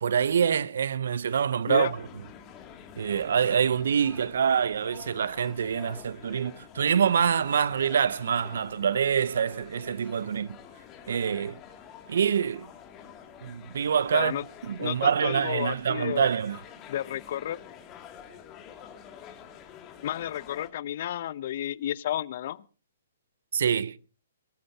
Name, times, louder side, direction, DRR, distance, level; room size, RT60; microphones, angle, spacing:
voice 1, 0.0-2.1 3.0-10.6 11.1-11.6 12.1-12.7 13.4-16.6 23.5-24.0, right 7 dB, 65° right, 0.6 m, -26 dB
sound 1, 1.7-20.7, left 8 dB, 25° left, 2.5 m, -48 dB
voice 2, 14.1-14.4 14.8-16.3 16.9-17.6 20.0-22.6, left 11 dB, 50° left, 0.6 m, -31 dB
23.5 x 14.0 x 2.8 m
hypercardioid pair, 135°, 0 cm